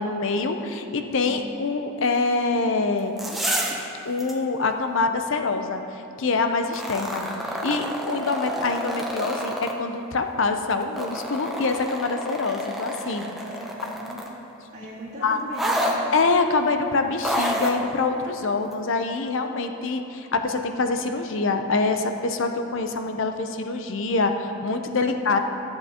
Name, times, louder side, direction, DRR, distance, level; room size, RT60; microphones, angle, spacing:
voice 1, 0.0-3.2 4.0-5.8 6.2-13.4 15.2-15.4 16.1-25.4, left 3 dB, 60° left, 7 dB, 0.5 m, -25 dB
voice 2, 0.8-1.5 13.5-14.2 14.7-16.1 25.0-25.4, right 1 dB, 40° right, -12 dB, 1.8 m, -40 dB
sound 1, 3.0-3.8 4.2-4.3 6.6-9.7 10.7-14.4 15.5-16.0 17.2-17.8 18.7-18.8, equal, ahead, 0.6 m, -29 dB
13.5 x 7.6 x 2.9 m, 2.8 s
head